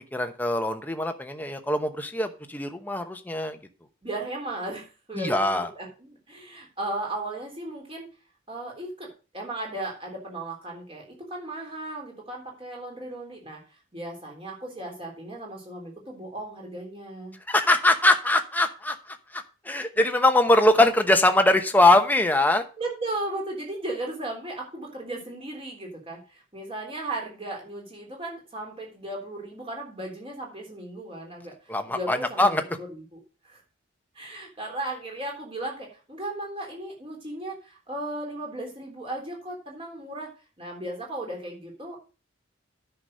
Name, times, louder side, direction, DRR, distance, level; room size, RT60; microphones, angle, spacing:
voice 1, 0.1-3.6 5.2-5.7 17.5-22.6 31.7-32.6, left 1 dB, 10° left, 6 dB, 0.9 m, -22 dB
voice 2, 4.0-8.1 8.5-17.4 22.8-32.5 32.8-33.6 34.1-40.3 40.6-42.0, right 1 dB, 25° right, 0 dB, 3.5 m, -36 dB
9.7 x 5.9 x 6.4 m, 0.34 s
head